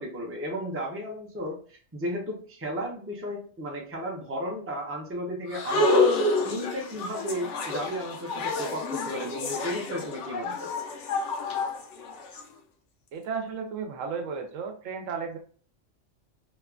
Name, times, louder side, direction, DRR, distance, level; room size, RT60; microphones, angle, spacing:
voice 1, 0.0-1.6 1.9-6.1 6.4-10.7, equal, 15° right, -1 dB, 0.5 m, -34 dB
sound 1, 5.5-12.4, left 2 dB, 70° left, 0.9 m, -28 dB
voice 2, 13.1-15.4, right 5 dB, 85° right, 4 dB, 1.0 m, -34 dB
2.9 x 2.2 x 2.4 m, 0.44 s
omnidirectional pair, 1.3 m